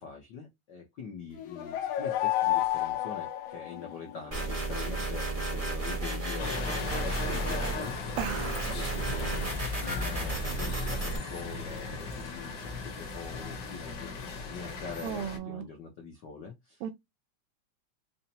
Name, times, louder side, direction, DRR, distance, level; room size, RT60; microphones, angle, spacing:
voice 1, 0.0-3.3 3.5-5.3 5.5-6.7 7.0-7.9 8.7-9.3 9.7-12.5 13.1-14.1 14.5-16.5, left 5 dB, 70° left, 1.0 m, -43 dB
sound 1, 1.4-4.3, left 13 dB, 85° left, 2.2 m, -30 dB
sound 2, 4.3-7.8 8.1-11.2, right 2 dB, 55° right, 0.4 m, -33 dB
sound 3, 6.4-15.4, left 3 dB, 55° left, 1.3 m, -37 dB
voice 2, 8.2-8.7 15.0-15.7 16.8-16.9, right 9 dB, 80° right, 1.6 m, -35 dB
5.5 x 2.1 x 2.8 m
omnidirectional pair, 3.3 m